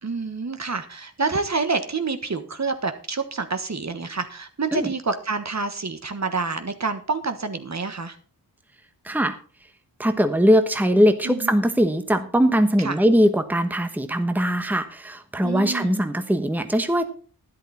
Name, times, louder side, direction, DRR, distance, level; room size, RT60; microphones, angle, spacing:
voice 1, 0.0-8.2 11.2-11.5 12.8-12.9 15.4-16.0, right 4 dB, 45° right, 8 dB, 1.4 m, -28 dB
voice 2, 9.0-9.4 10.0-17.1, equal, 5° right, 9 dB, 1.1 m, -21 dB
12.0 x 11.0 x 4.2 m, 0.40 s
wide cardioid pair, 90°, 38 cm